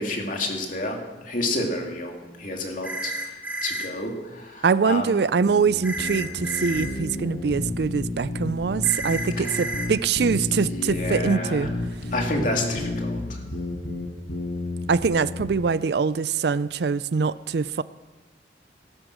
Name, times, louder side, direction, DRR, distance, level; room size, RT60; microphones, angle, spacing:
voice 1, 0.0-5.1 9.4-9.7 10.7-11.7 12.1-13.4, left 2 dB, 45° left, 1 dB, 2.7 m, -30 dB
sound 1, 2.8-3.9 5.8-6.9 8.8-9.9, right 1 dB, 10° right, 2.5 m, -31 dB
voice 2, 4.6-11.7 14.9-17.8, right 5 dB, 60° right, 17 dB, 0.4 m, -23 dB
sound 2, 5.4-15.5, left 2 dB, 85° left, 4.6 m, -31 dB
18.5 x 11.5 x 6.4 m, 1.2 s
head